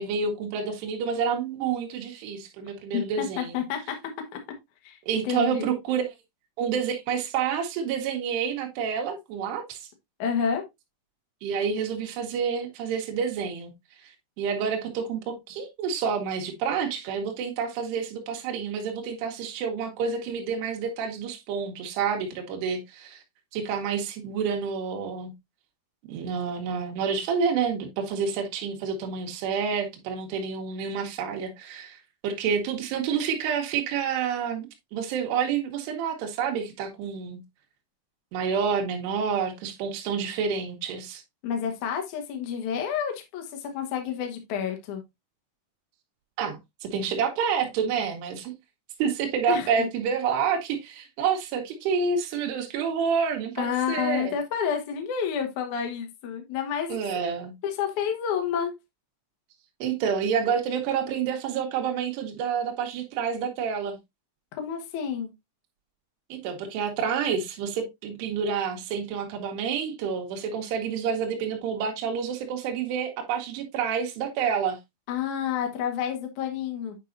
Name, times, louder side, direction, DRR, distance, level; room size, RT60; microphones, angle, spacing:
voice 1, 0.0-3.6 5.1-6.0 6.6-9.9 11.4-13.7 14.0-14.1 14.4-23.2 23.5-25.3 26.1-32.0 32.2-37.4 38.3-41.2 46.4-48.5 49.0-54.4 56.9-57.5 59.8-64.0 66.3-74.8, right 6 dB, 70° right, 3.0 m, -28 dB
voice 2, 2.9-4.0 4.8-5.0 5.2-5.7 10.2-10.6 41.4-45.0 49.5-49.9 53.6-57.2 57.6-58.7 64.6-65.3 75.1-77.0, left 8 dB, 85° left, 1.7 m, -29 dB
8.3 x 5.5 x 2.6 m
omnidirectional pair, 5.7 m